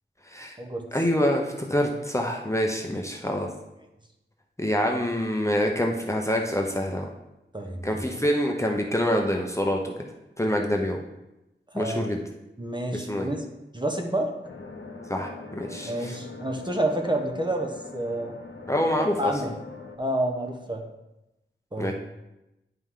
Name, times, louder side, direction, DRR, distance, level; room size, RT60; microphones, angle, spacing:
voice 1, 0.3-0.6 0.9-3.5 4.6-7.1 7.8-9.9 10.4-11.0 11.7-12.2 12.9-13.3 15.1-16.2 18.7-19.3 21.8-21.9, equal, 15° left, 1 dB, 0.9 m, -26 dB
voice 2, 7.5-8.0 11.7-12.1 12.6-13.4 13.7-14.3 15.8-18.4 19.2-19.5 20.0-20.8 21.7-21.9, right 1 dB, 25° right, 2 dB, 1.1 m, -29 dB
sound 1, 14.4-20.0, left 3 dB, 75° left, 0.9 m, -42 dB
9.7 x 5.3 x 3.8 m, 0.92 s
wide cardioid pair, 65°, 20 cm